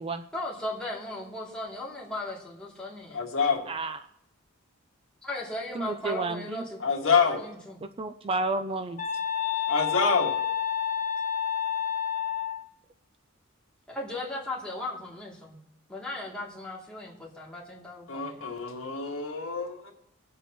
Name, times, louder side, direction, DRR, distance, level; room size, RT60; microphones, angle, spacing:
voice 1, 0.3-3.2 5.2-7.8 13.9-15.6 15.9-18.5, left 1 dB, 5° left, -6 dB, 2.7 m, -37 dB
voice 2, 3.1-3.6 6.8-7.4 9.7-10.4 18.1-19.9, left 5 dB, 65° left, 1 dB, 1.9 m, -26 dB
voice 3, 3.7-4.0 5.8-6.6 8.0-9.0, right 3 dB, 25° right, 9 dB, 0.4 m, -31 dB
sound 1, 9.0-12.6, left 9 dB, 40° left, 1.4 m, -29 dB
22.5 x 8.1 x 3.0 m, 0.79 s
head